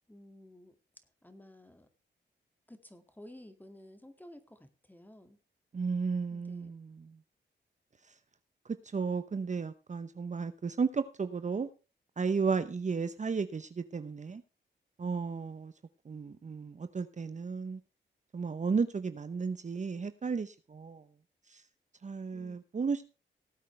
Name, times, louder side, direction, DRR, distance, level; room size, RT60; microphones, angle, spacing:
voice 1, 0.1-0.7 1.2-1.9 2.7-5.4 6.3-6.7 22.3-22.6, left 1 dB, 10° left, 2.2 m, -53 dB
voice 2, 5.7-7.2 8.9-11.7 12.2-14.4 15.0-15.7 16.1-17.8 18.3-21.0 21.5-21.6 22.0-23.0, right 5 dB, 40° right, 0.9 m, -34 dB
18.5 x 8.3 x 3.3 m
cardioid pair, 80°, 19 cm